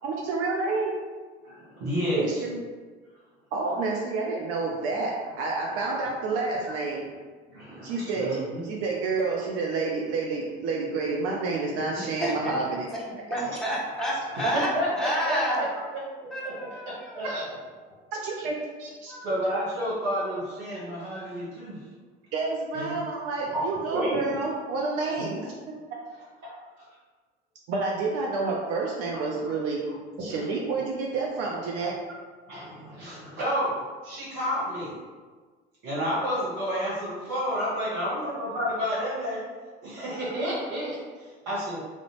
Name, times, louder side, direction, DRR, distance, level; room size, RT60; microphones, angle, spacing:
voice 1, 0.0-1.0 2.2-2.6 3.5-7.0 7.8-12.8 14.4-14.5 18.1-19.1 22.3-25.5 25.9-26.0 27.7-29.8 30.2-32.0, right 3 dB, 45° right, -2 dB, 0.4 m, -29 dB
voice 2, 1.4-2.4 5.7-5.8 7.5-8.6 13.4-13.6 14.3-15.6 16.4-16.8 17.1-17.4 19.1-21.8 22.7-22.9 23.5-24.4 25.2-25.4 26.4-26.9 29.1-29.2 30.2-30.5 32.5-34.9 35.8-39.5 39.8-41.0 41.5-41.8, equal, 60° right, -9 dB, 1.1 m, -30 dB
voice 3, 12.0-12.5 12.9-13.0 13.3-15.7 16.3-17.3, equal, ahead, -6 dB, 0.7 m, -29 dB
2.5 x 2.0 x 2.9 m, 1.4 s
figure-of-eight pair, 65°, 34 cm